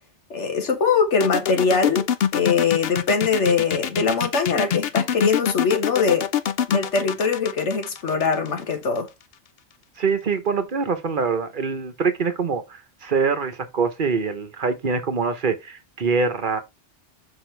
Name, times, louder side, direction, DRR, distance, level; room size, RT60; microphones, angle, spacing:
voice 1, 0.3-2.1 2.3-6.3 6.7-9.1, left 5 dB, 90° left, 1.6 m, -22 dB
sound 1, 1.2-9.0, left 9 dB, 65° left, 0.8 m, -24 dB
voice 2, 10.0-16.6, right 5 dB, 50° right, 1.1 m, -24 dB
6.1 x 5.5 x 3.3 m
omnidirectional pair, 1.2 m